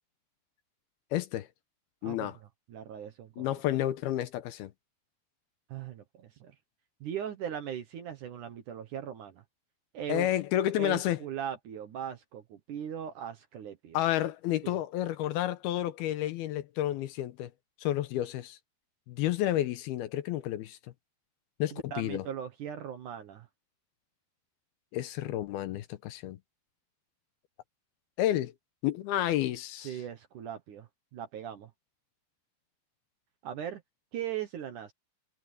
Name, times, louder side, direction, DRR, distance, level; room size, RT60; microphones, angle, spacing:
voice 1, 1.1-1.5 2.0-2.4 3.4-4.7 10.1-11.2 13.9-17.5 17.8-18.6 19.1-20.8 21.6-22.2 24.9-26.4 28.2-28.5 28.8-29.9, left 13 dB, 75° left, 2.6 m, -30 dB
voice 2, 2.0-3.5 5.7-6.6 7.0-9.4 9.9-10.3 10.8-14.0 14.6-14.8 21.7-23.5 29.8-31.7 33.4-33.8 34.1-34.9, right 9 dB, 65° right, 2.2 m, -39 dB
omnidirectional pair, 4.8 m